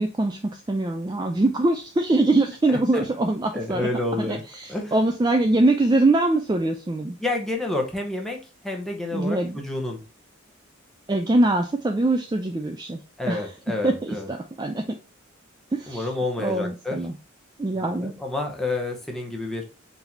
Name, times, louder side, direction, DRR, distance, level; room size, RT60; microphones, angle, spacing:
voice 1, 0.0-3.9 4.2-7.2 9.1-9.6 11.1-13.0 13.3-13.5 13.8-14.8 15.7-16.1 16.4-17.1 17.6-18.1, right 2 dB, 20° right, 4 dB, 0.3 m, -23 dB
voice 2, 2.7-3.0 3.5-4.4 4.7-5.1 7.2-10.0 13.2-14.3 15.9-17.0 17.7-19.6, left 2 dB, ahead, 0 dB, 0.8 m, -29 dB
4.0 x 2.7 x 4.4 m, 0.33 s
head